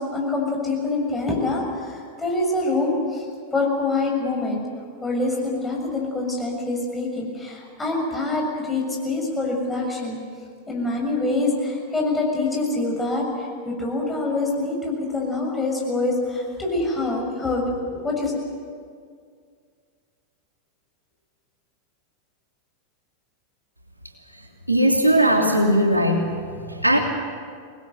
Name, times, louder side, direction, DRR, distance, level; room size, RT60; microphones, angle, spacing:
voice 1, 0.0-3.2 3.5-4.6 5.0-10.2 10.7-18.3, left 2 dB, 10° left, -1 dB, 6.9 m, -25 dB
voice 2, 24.7-26.2 26.7-27.0, right 1 dB, 85° right, 2 dB, 2.8 m, -18 dB
25.0 x 20.0 x 8.0 m, 2.1 s
figure-of-eight pair, 90°, 0 cm